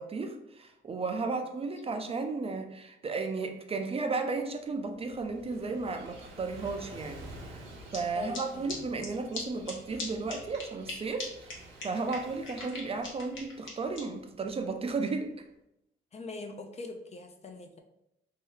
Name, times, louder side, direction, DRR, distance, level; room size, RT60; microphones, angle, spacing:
voice 1, 0.0-7.7 7.9-11.6 11.8-15.5, right 3 dB, 30° right, 5 dB, 0.4 m, -34 dB
Gull seagull / Waves surf, 4.7-15.2, right 1 dB, 80° right, 0.9 m, -51 dB
sound 1, 7.9-8.0 8.3-8.4 8.7-8.8 9.0-9.1 9.3-9.4 9.7-9.8 10.0-10.1 10.3-10.9 11.2-11.3 11.5-11.6 11.8-14.0, left 3 dB, 75° left, 0.9 m, -39 dB
voice 2, 8.1-8.8 16.1-17.8, left 3 dB, 35° left, 5 dB, 0.4 m, -42 dB
2.8 x 2.2 x 3.2 m, 0.83 s
cardioid pair, 90°, 20 cm